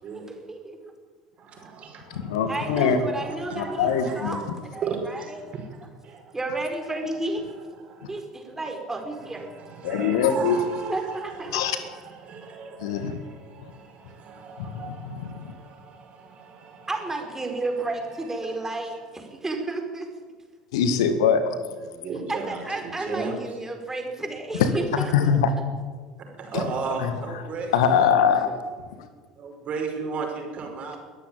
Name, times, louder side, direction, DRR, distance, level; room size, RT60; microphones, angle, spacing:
voice 1, 0.5-0.9 2.5-5.4 6.3-7.4 8.1-9.5 10.9-11.6 16.9-20.1 22.3-25.1, right 2 dB, 10° right, 4 dB, 4.7 m, -32 dB
voice 2, 1.4-4.5 4.8-6.3 6.6-6.7 7.7-8.2 8.6-18.7 21.8-23.6 26.4-27.7 29.4-31.0, right 5 dB, 40° right, 3 dB, 5.7 m, -36 dB
voice 3, 2.1-3.0 3.5-4.4 9.8-10.6 11.5-11.8 12.8-13.2 14.6-14.7 15.1-15.5 20.7-21.6 24.6-25.5 26.5-26.6 27.0-27.1 27.7-28.5 29.0-29.1, left 7 dB, 65° left, 10 dB, 1.8 m, -22 dB
22.0 x 14.0 x 8.9 m, 1.5 s
figure-of-eight pair, 65°, 3 cm